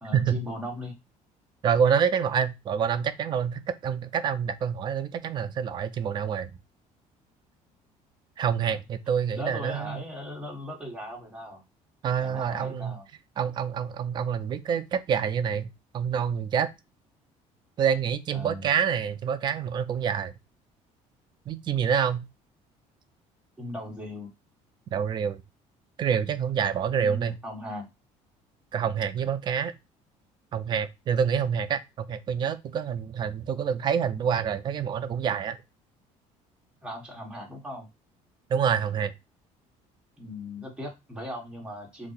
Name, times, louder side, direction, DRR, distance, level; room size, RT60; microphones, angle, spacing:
voice 1, 0.0-0.9 9.3-11.6 12.2-13.0 18.3-18.7 23.6-24.3 26.9-27.9 36.8-37.9 40.2-42.1, left 1 dB, 5° right, 1.0 m, -38 dB
voice 2, 1.6-6.5 8.4-10.0 12.0-12.9 13.4-15.7 15.9-16.7 17.8-20.3 21.5-22.3 24.9-25.4 26.0-27.4 28.7-29.7 30.5-35.6 38.5-39.1, right 7 dB, 35° right, 0.3 m, -27 dB
2.6 x 2.0 x 3.8 m
cardioid pair, 140°, 14 cm